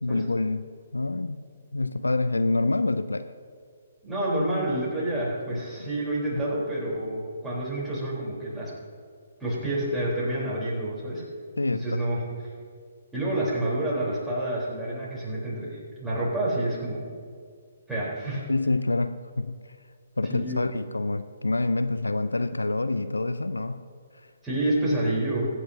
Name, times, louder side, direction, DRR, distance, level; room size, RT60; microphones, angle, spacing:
voice 1, 0.0-0.6 0.9-3.3 5.5-5.9 11.6-12.0 18.5-19.5 20.2-23.9, left 2 dB, 75° left, 12 dB, 0.4 m, -27 dB
voice 2, 4.0-8.7 9.4-11.2 11.7-12.2 13.1-17.0 17.9-18.4 20.3-20.6 24.4-25.5, right 1 dB, 5° right, -8 dB, 3.7 m, -28 dB
23.0 x 9.3 x 2.8 m, 2.1 s
figure-of-eight pair, 130°, 0 cm